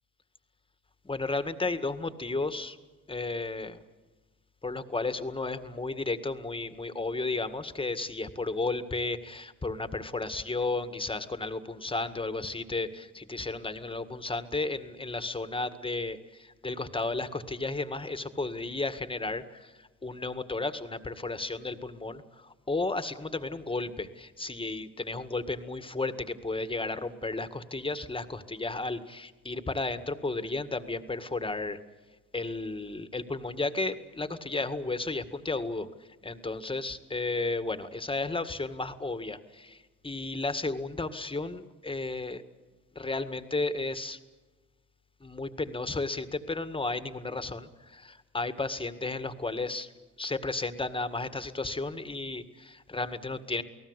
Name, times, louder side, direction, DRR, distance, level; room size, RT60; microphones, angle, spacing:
voice 1, 1.0-2.8 3.1-3.8 4.6-31.8 32.3-35.9 36.2-39.8 40.0-42.4 43.0-44.2 45.2-49.9 50.2-53.6, left 3 dB, 15° left, 11 dB, 1.9 m, -33 dB
29.5 x 18.5 x 8.2 m, 1.2 s
cardioid pair, 90°, 30 cm